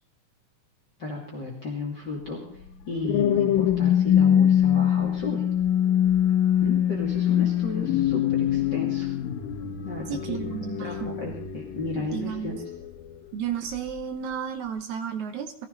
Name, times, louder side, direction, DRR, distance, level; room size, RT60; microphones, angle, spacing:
voice 1, 1.0-2.4 2.9-5.4 6.6-9.1 9.8-10.4 10.8-12.6, left 3 dB, 35° left, -2 dB, 2.9 m, -33 dB
sound 1, 2.6-13.2 13.7-14.0, left 10 dB, 80° left, 2.6 m, -24 dB
voice 2, 10.1-11.3 11.9-12.6 13.3-15.7, right 7 dB, 65° right, 7 dB, 2.2 m, -33 dB
19.0 x 15.0 x 4.0 m, 0.67 s
omnidirectional pair, 3.9 m